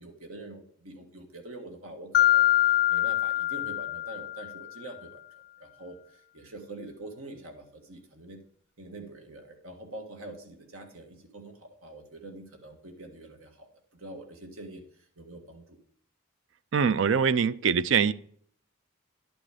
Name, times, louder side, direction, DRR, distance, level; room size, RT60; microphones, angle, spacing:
voice 1, 0.0-5.2 5.6-8.4 8.8-15.8, right 2 dB, 85° right, 4 dB, 1.7 m, -45 dB
Mallet percussion, 2.1-4.7, left 14 dB, 45° left, 0.3 m, -24 dB
voice 2, 16.7-18.1, right 6 dB, 60° right, 16 dB, 0.4 m, -23 dB
11.0 x 6.2 x 5.0 m, 0.62 s
head